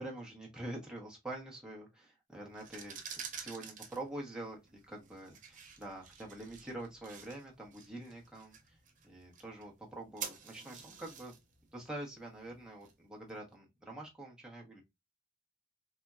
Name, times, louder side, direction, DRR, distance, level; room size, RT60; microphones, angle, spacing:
voice 1, 0.0-3.0 3.3-8.8 9.0-11.4 11.7-14.8, right 1 dB, 5° right, -2 dB, 0.8 m, -45 dB
sound 1, 2.5-13.3, right 7 dB, 35° right, 0.5 m, -50 dB
3.9 x 2.1 x 2.3 m, 0.21 s
head